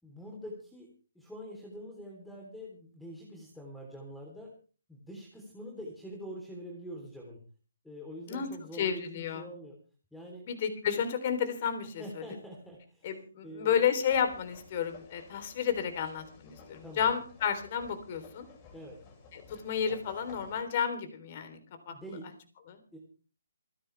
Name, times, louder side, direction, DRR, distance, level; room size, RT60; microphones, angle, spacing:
voice 1, 0.0-0.9 1.2-4.5 4.9-7.4 7.8-9.8 10.1-10.5 12.0-13.2 13.4-13.8 16.8-17.1 18.7-19.0 21.9-22.3 22.9-23.0, equal, 5° left, 0 dB, 3.6 m, -45 dB
voice 2, 8.8-9.5 10.4-12.0 13.0-18.5 19.3-21.6 21.9-22.0 22.7-22.8, left 8 dB, 40° left, 8 dB, 3.6 m, -31 dB
sound 1, 14.0-20.6, left 4 dB, 25° left, 6.0 m, -54 dB
28.0 x 10.5 x 3.4 m, 0.37 s
hypercardioid pair, 145°, 0 cm